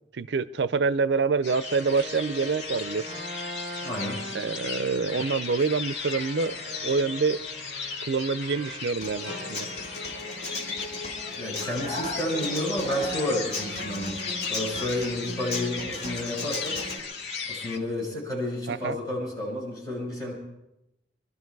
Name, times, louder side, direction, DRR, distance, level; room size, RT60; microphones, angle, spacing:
voice 1, 0.1-3.1 4.3-7.4 8.0-9.7 18.7-18.9, right 4 dB, 75° right, 16 dB, 0.5 m, -26 dB
sound 1, 1.4-17.8, left 5 dB, 75° left, 1.7 m, -36 dB
sound 2, 1.5-8.9 9.2-11.6, equal, 25° right, 5.7 m, -42 dB
voice 2, 3.8-4.2 11.4-14.2 14.5-16.8 17.5-20.3, left 1 dB, 20° left, -4 dB, 6.0 m, -31 dB
Human voice / Acoustic guitar, 9.0-17.0, left 2 dB, 40° left, 2.2 m, -36 dB
24.0 x 12.5 x 4.6 m, 0.91 s
head